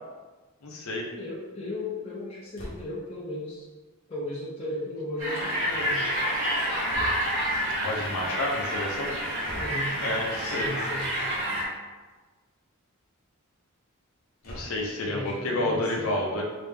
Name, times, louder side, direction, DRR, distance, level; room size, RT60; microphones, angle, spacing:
voice 1, 0.6-1.1 7.8-9.2 10.0-10.7 14.4-16.4, left 1 dB, 70° left, 0 dB, 0.7 m, -30 dB
voice 2, 1.2-3.7 4.1-6.0 9.5-9.9 10.4-11.1 15.0-16.1, left 1 dB, 30° left, -9 dB, 0.6 m, -35 dB
sound 1, 2.5-3.1 6.9-7.5 9.4-9.9 11.1-11.4 11.8-11.9 12.1-12.2 14.4-15.0, equal, 45° left, 0.9 m, -41 dB
sound 2, 5.2-11.6, equal, 60° right, 1.2 m, -29 dB
3.3 x 2.9 x 3.4 m, 1.3 s
head